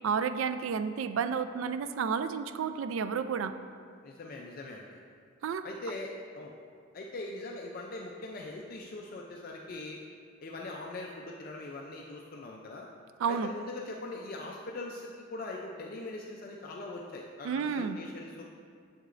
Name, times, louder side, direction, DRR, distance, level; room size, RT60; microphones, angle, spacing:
voice 1, 0.0-3.5 5.4-5.6 13.2-13.5 17.4-18.0, right 6 dB, 70° right, 10 dB, 0.3 m, -31 dB
voice 2, 4.0-5.0 5.6-6.5 6.9-10.0 10.4-12.8 13.3-18.4, left 2 dB, 45° left, -1 dB, 0.4 m, -41 dB
7.9 x 6.6 x 2.5 m, 2.2 s
head